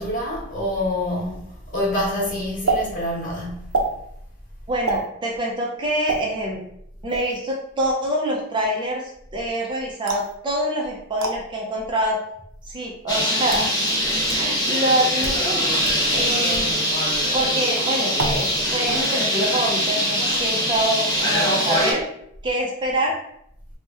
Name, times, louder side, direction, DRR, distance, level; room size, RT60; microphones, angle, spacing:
voice 1, 0.0-3.8 16.1-16.6, left 1 dB, 40° left, 1.0 m, -27 dB
sound 1, 2.7-2.8 3.7-3.9 4.9-5.1 6.1-6.2 7.1-7.4 10.1-10.3 11.2-11.3 12.3-12.4 13.2-13.7 14.3-14.4 15.1-15.4 15.8-16.0 16.5-16.7 18.2-18.6 18.9-19.3, right 3 dB, 85° right, 0.5 m, -26 dB
voice 2, 4.7-6.6 7.0-12.2 12.7-13.7 14.3-15.5 16.1-16.7 17.3-22.1 22.4-23.2, right 1 dB, 25° right, 0.4 m, -25 dB
Bird, 13.1-21.9, equal, 20° left, 0.7 m, -22 dB
2.8 x 2.1 x 3.4 m
head